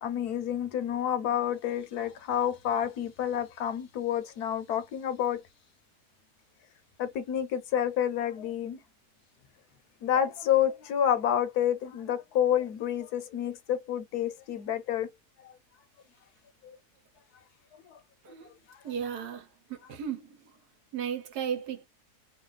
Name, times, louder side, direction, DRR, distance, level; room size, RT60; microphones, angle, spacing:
voice 1, 0.0-5.4 7.0-8.8 10.0-15.1 15.4-15.5 16.6-16.8 17.9-18.0 18.7-18.8, left 10 dB, 75° left, 1.2 m, -29 dB
voice 2, 18.8-20.5 20.9-21.9, right 8 dB, 80° right, 1.4 m, -35 dB
3.2 x 2.3 x 3.8 m
omnidirectional pair, 1.7 m